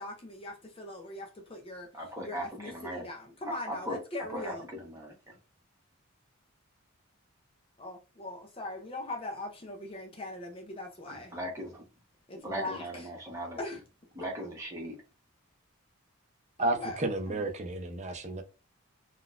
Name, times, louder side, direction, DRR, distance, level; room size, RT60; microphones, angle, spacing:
voice 1, 0.0-1.9 2.2-4.7 7.8-11.4 12.3-13.0 13.6-13.8 14.2-14.3 16.6-17.5, left 2 dB, 25° left, 0.5 m, -40 dB
voice 2, 1.9-3.1 3.7-4.0 4.3-5.4 11.1-11.8 12.4-13.6 14.1-15.0, equal, 15° right, 1.0 m, -38 dB
voice 3, 16.6-18.4, right 2 dB, 30° right, 0.5 m, -32 dB
3.7 x 2.3 x 2.4 m
head